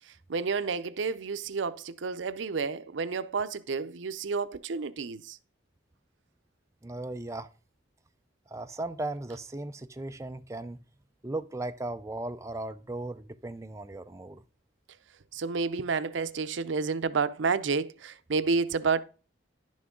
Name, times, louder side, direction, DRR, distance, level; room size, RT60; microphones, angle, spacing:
voice 1, 0.3-5.4 15.3-19.0, right 4 dB, 80° right, 0.6 m, -30 dB
voice 2, 6.8-7.5 8.5-10.8 11.2-14.4, right 2 dB, 15° right, 0.5 m, -37 dB
11.0 x 6.2 x 3.7 m
head